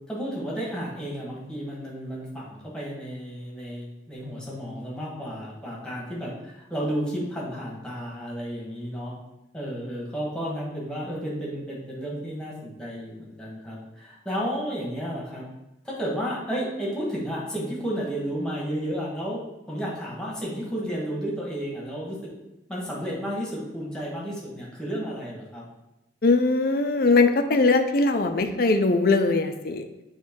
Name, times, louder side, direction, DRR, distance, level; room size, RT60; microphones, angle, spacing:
voice 1, 0.1-9.1 9.5-15.4 15.8-22.3 22.7-25.7, equal, 5° left, -5 dB, 1.5 m, -32 dB
voice 2, 26.2-29.9, left 3 dB, 55° left, 6 dB, 0.6 m, -21 dB
7.4 x 3.2 x 4.5 m, 0.96 s
head